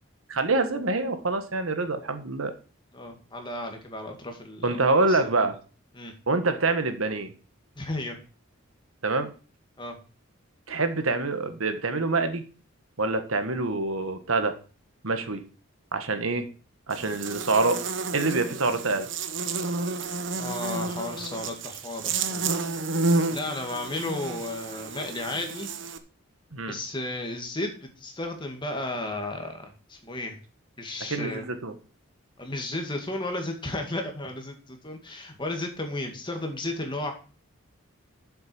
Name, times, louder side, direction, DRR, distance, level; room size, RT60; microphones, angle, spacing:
voice 1, 0.3-2.5 4.6-5.6 6.3-7.3 9.0-9.3 10.7-12.4 13.0-14.5 15.0-15.4 15.9-16.5 16.9-17.8 18.1-19.1 26.5-26.8 31.1-31.7, right 3 dB, 85° right, 9 dB, 1.5 m, -26 dB
voice 2, 2.9-4.8 5.1-5.2 5.9-6.1 7.8-8.2 9.8-10.0 17.3-17.4 20.4-22.5 23.3-25.7 26.7-30.4 30.8-31.5 32.4-37.1, left 2 dB, 20° left, 4 dB, 2.2 m, -33 dB
Buzz, 16.9-26.0, right 3 dB, 60° right, 1.0 m, -30 dB
7.8 x 7.5 x 7.0 m, 0.37 s
head